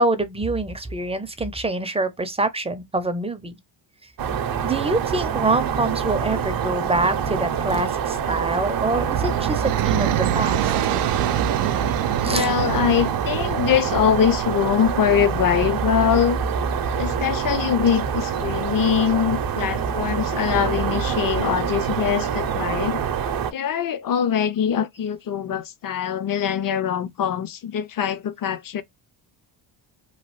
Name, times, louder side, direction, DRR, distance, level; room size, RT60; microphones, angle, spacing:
voice 1, 0.0-3.6 4.6-11.0 12.2-12.6 19.6-19.9 24.7-24.9, right 2 dB, 10° right, 0.6 m, -25 dB
sound 1, 4.2-23.5, right 7 dB, 45° right, 0.7 m, -25 dB
sound 2, 8.6-14.7, right 11 dB, 80° right, 0.6 m, -26 dB
voice 2, 12.2-16.4 17.0-23.0 23.5-28.8, left 9 dB, 45° left, 0.6 m, -23 dB
3.1 x 2.3 x 3.1 m
cardioid pair, 80°, 50 cm